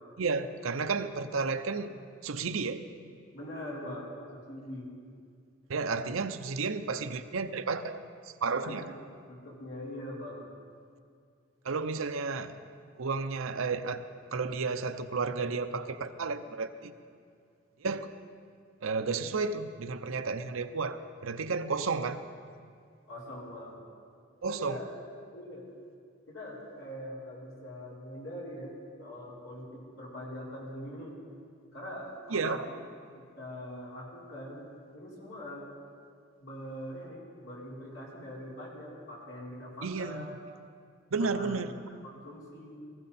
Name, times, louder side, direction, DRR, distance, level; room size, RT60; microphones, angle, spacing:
voice 1, 0.2-1.9 2.2-2.8 5.7-8.9 11.6-12.5 12.9-14.1 14.3-16.9 17.8-18.1 18.8-22.2 24.4-24.8 32.3-32.7 39.8-40.3 41.1-41.7, right 4 dB, 85° right, 10 dB, 0.7 m, -32 dB
voice 2, 3.3-4.9 8.6-9.0 9.3-10.5 23.1-23.8 24.5-24.8 25.3-25.6 26.3-31.2 31.7-32.6 33.2-35.7 36.4-40.4 41.2-41.6 42.1-42.8, left 1 dB, 70° left, -6 dB, 4.4 m, -43 dB
19.5 x 15.5 x 4.3 m, 2.3 s
head